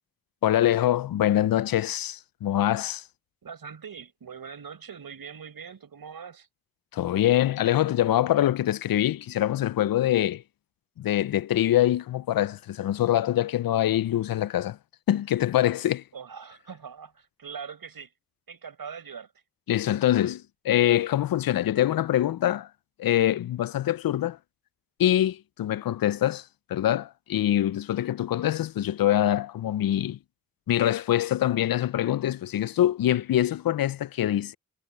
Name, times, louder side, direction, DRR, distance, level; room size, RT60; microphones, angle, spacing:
voice 1, 0.4-3.0 6.9-10.4 11.0-14.8 15.1-16.0 19.7-22.7 23.0-24.4 25.0-26.4 26.7-30.2 30.7-34.6, left 12 dB, 75° left, 0.5 m, -24 dB
voice 2, 3.4-6.5 16.1-18.1 18.5-19.3, right 6 dB, 80° right, 5.4 m, -42 dB
cardioid pair, 40°, 35 cm